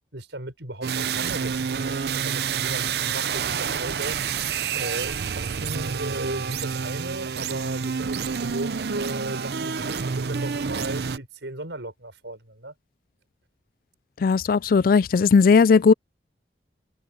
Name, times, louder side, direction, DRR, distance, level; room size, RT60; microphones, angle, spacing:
voice 1, 0.1-4.2 4.7-12.7, right 1 dB, 90° right, 6.4 m, -36 dB
sound 1, 0.8-11.2, right 6 dB, 60° right, 0.6 m, -28 dB
voice 2, 14.2-15.9, left 5 dB, 50° left, 0.3 m, -17 dB
head